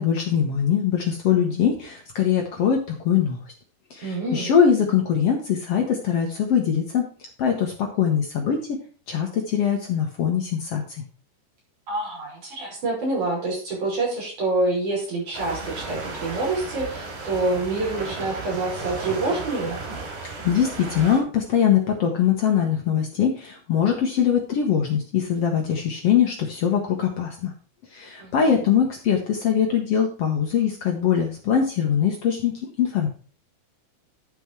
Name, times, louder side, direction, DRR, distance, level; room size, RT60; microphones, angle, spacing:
voice 1, 0.0-3.4 3.9-7.1 7.4-8.8 9.1-11.0 20.4-27.5 27.9-33.1, left 8 dB, 75° left, 2 dB, 1.4 m, -22 dB
voice 2, 4.0-4.5 11.9-19.8 28.2-28.6, right 2 dB, 50° right, -5 dB, 7.0 m, -27 dB
sound 1, 15.3-21.2, right 3 dB, 90° right, 5.0 m, -34 dB
11.0 x 5.7 x 4.7 m, 0.40 s
omnidirectional pair, 4.4 m